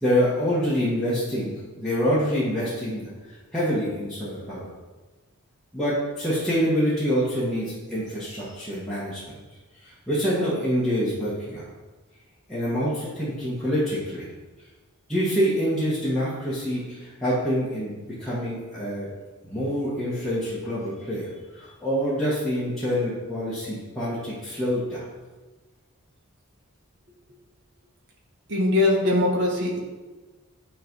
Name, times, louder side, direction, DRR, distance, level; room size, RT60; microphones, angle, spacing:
voice 1, 0.0-3.1 3.5-4.7 5.7-9.2 9.8-11.7 12.5-14.2 15.1-19.1 19.4-25.0, equal, 5° left, -11 dB, 1.5 m, -26 dB
voice 2, 28.5-29.8, left 2 dB, 55° right, -1 dB, 1.4 m, -21 dB
8.9 x 3.3 x 5.3 m, 1.2 s
head